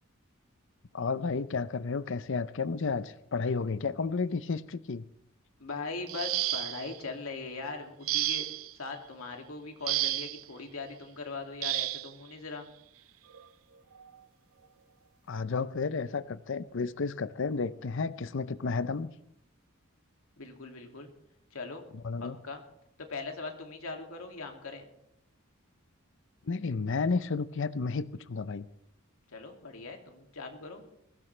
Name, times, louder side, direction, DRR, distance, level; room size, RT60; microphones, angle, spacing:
voice 1, 0.9-5.0 15.3-19.1 21.9-22.4 26.5-28.7, left 4 dB, 65° left, 0.6 m, -32 dB
voice 2, 5.6-8.5 8.7-12.7 20.4-21.1 21.5-21.8 22.2-22.6 23.0-24.9 29.3-30.8, left 3 dB, 85° left, 2.4 m, -40 dB
sound 1, 6.1-7.0 8.1-8.7 9.9-10.4 11.6-12.1 13.3-13.4 13.9-14.2, right 14 dB, 80° right, 0.6 m, -31 dB
21.5 x 17.0 x 3.3 m
head